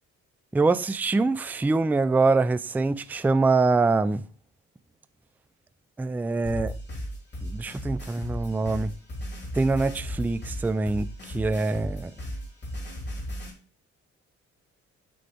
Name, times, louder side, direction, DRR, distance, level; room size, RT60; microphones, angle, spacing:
voice 1, 0.5-4.2 6.0-6.7 7.4-8.9 9.5-12.1, right 3 dB, 5° right, 0.3 m, -24 dB
sound 1, 6.4-13.5, equal, 35° left, 3.3 m, -35 dB
9.1 x 3.9 x 3.3 m
cardioid pair, 90°, 30 cm